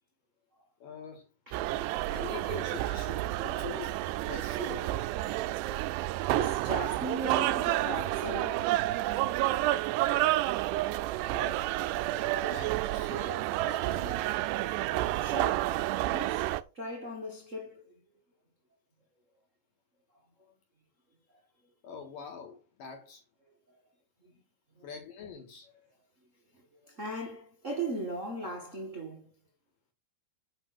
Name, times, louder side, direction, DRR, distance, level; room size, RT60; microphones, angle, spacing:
voice 1, 0.8-1.3 2.1-4.9 11.3-11.6 12.4-14.9 21.8-23.2 24.8-25.7, left 6 dB, 60° left, 3.1 m, -45 dB
voice 2, 1.5-1.8 6.2-8.8 15.2-15.8 16.1-17.9 21.3-21.4 24.2-24.3 24.7-24.9 26.5-29.3, right 2 dB, 60° right, 0.7 m, -38 dB
sound 1, 1.5-16.6, right 16 dB, 80° right, 2.6 m, -30 dB
7.7 x 6.1 x 6.2 m
omnidirectional pair, 4.9 m